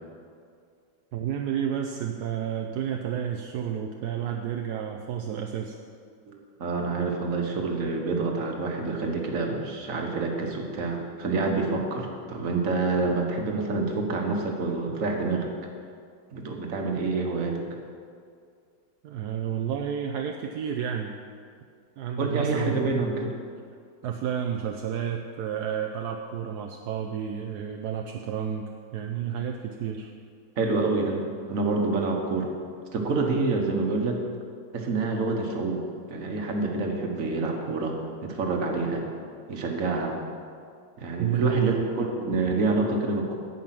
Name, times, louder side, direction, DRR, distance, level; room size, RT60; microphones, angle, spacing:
voice 1, 1.1-5.8 19.0-21.1 22.0-23.1 24.0-30.1 41.2-41.8, right 9 dB, 70° right, 3 dB, 1.1 m, -31 dB
voice 2, 6.3-15.5 16.3-17.6 22.2-23.3 30.6-31.2 31.5-32.5 32.9-34.2 34.7-35.8 36.1-38.0 38.2-39.0 39.5-40.1 41.0-43.4, right 3 dB, 45° right, 2 dB, 1.6 m, -27 dB
17.0 x 5.6 x 5.9 m, 2.3 s
omnidirectional pair, 2.0 m